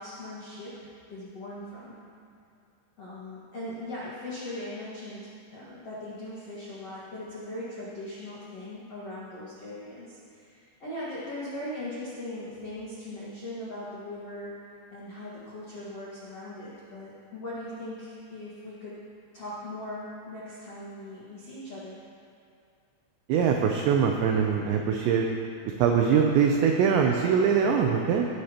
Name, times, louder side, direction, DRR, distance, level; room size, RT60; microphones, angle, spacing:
voice 1, 0.0-1.9 3.0-14.5 14.9-18.9 19.3-22.0, left 1 dB, 80° left, -9 dB, 1.4 m, -39 dB
voice 2, 23.3-25.3 25.8-28.3, right 7 dB, 90° right, 2 dB, 2.5 m, -23 dB
19.5 x 9.7 x 3.0 m, 2.4 s
omnidirectional pair, 5.9 m